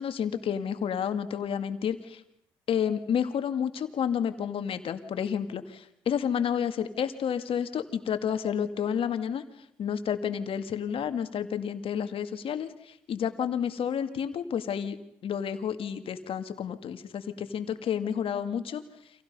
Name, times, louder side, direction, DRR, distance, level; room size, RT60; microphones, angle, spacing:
voice 1, 0.0-2.2 2.7-9.4 9.8-15.0 15.2-18.8, left 8 dB, 60° left, 9 dB, 2.2 m, -30 dB
29.5 x 26.0 x 5.5 m, 0.77 s
hypercardioid pair, 50°, 11 cm